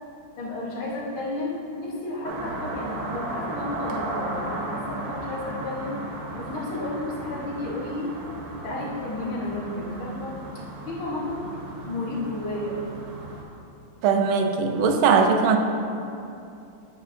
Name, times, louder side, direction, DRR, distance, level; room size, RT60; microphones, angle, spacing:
voice 1, 0.4-6.1 6.4-8.2 8.5-11.6 11.8-12.8, left 2 dB, 85° left, -4 dB, 2.2 m, -32 dB
sound 1, 2.2-13.4, right 2 dB, 55° right, 1.2 m, -35 dB
voice 2, 14.0-15.6, right 5 dB, 80° right, 5 dB, 1.4 m, -20 dB
8.9 x 8.8 x 2.6 m, 2.7 s
omnidirectional pair, 2.3 m